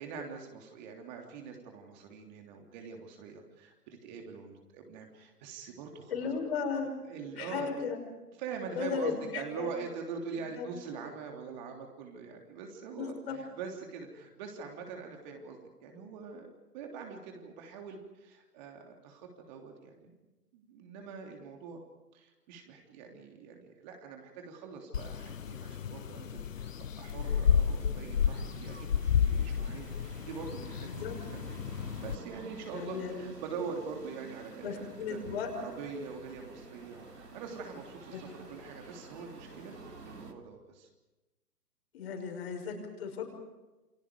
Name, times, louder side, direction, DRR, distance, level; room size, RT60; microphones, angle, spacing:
voice 1, 0.0-6.3 7.0-7.8 8.4-20.1 20.5-21.8 22.1-26.7 27.0-31.0 31.3-35.2 35.5-37.0 37.3-39.7 40.0-40.9, right 5 dB, 30° right, 2 dB, 3.3 m, -43 dB
voice 2, 6.1-6.9 7.4-8.0 8.7-9.7 10.6-10.7 13.0-13.4 30.8-31.1 32.7-33.2 34.6-35.5 38.1-38.2 41.9-43.2, left 6 dB, 40° left, 3 dB, 6.0 m, -35 dB
sound 1, 24.9-32.2, left 8 dB, 55° left, 1.0 m, -31 dB
sound 2, 27.6-40.3, right 3 dB, 90° right, 2.6 m, -51 dB
Laughter / Chatter / Crowd, 28.1-40.2, right 4 dB, 50° right, 7.0 m, -58 dB
29.0 x 25.0 x 5.2 m, 1.1 s
figure-of-eight pair, 135°, 47 cm